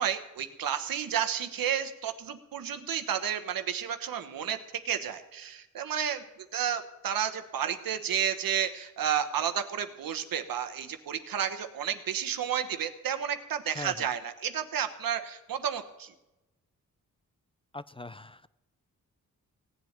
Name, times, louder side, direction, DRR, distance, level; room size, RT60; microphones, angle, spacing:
voice 1, 0.0-4.6 4.8-6.2 6.5-16.1, right 9 dB, 85° right, 9 dB, 1.2 m, -31 dB
voice 2, 13.7-14.1 17.7-18.5, left 2 dB, 15° left, 16 dB, 0.4 m, -41 dB
17.0 x 7.3 x 9.3 m, 0.98 s
cardioid pair, 75°, 34 cm